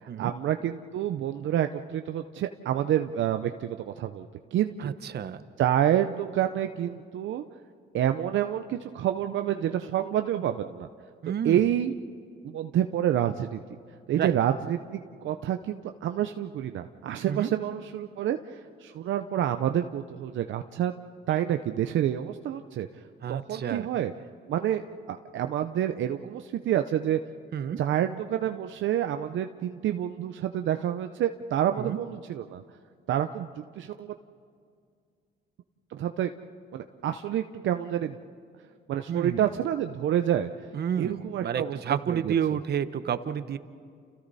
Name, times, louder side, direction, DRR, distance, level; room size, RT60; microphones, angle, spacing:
voice 1, 0.0-4.9 5.6-7.4 7.9-10.9 11.3-11.9 12.4-13.6 14.1-20.9 21.3-22.9 23.3-24.1 24.5-24.8 25.1-27.2 27.8-32.6 33.1-33.5 33.8-34.1 35.9-36.3 36.7-38.2 38.9-40.7 41.0-41.8 42.1-42.3, right 11 dB, 75° right, 7 dB, 0.7 m, -28 dB
voice 2, 4.8-5.4 11.2-11.7 14.1-14.3 17.3-17.5 23.2-23.9 27.5-27.8 31.8-32.0 39.1-39.5 40.7-43.6, right 8 dB, 55° right, 12 dB, 1.0 m, -30 dB
30.0 x 29.0 x 4.2 m, 2.3 s
cardioid pair, 90°, 20 cm